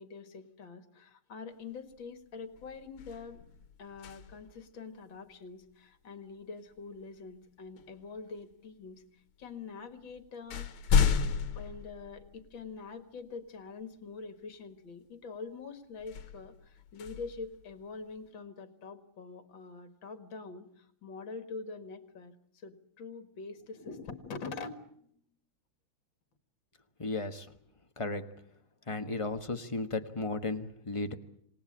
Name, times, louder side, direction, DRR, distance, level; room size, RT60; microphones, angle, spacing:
voice 1, 0.0-3.4 3.8-10.7 11.6-25.1, left 4 dB, 65° left, 9 dB, 2.4 m, -45 dB
sound 1, 1.9-2.2 2.5-4.6 6.8-7.0 7.8-8.5 9.4-9.5 9.9-12.7 13.3-13.4 16.0-18.2, left 6 dB, 85° left, 2.1 m, -33 dB
voice 2, 27.0-27.5 28.0-28.2 28.9-31.1, left 3 dB, 20° left, 7 dB, 1.0 m, -34 dB
27.5 x 18.5 x 8.7 m, 0.69 s
omnidirectional pair, 2.3 m